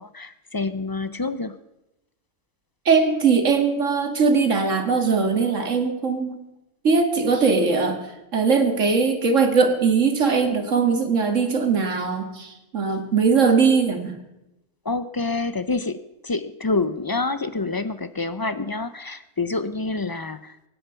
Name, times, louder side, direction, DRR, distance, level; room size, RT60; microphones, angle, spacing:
voice 1, 0.0-1.6 14.8-20.7, left 3 dB, 35° left, 13 dB, 0.3 m, -27 dB
voice 2, 2.9-6.4 6.8-8.0 8.3-14.2, right 5 dB, 85° right, 5 dB, 2.2 m, -20 dB
23.5 x 9.4 x 5.7 m, 0.95 s
omnidirectional pair, 1.3 m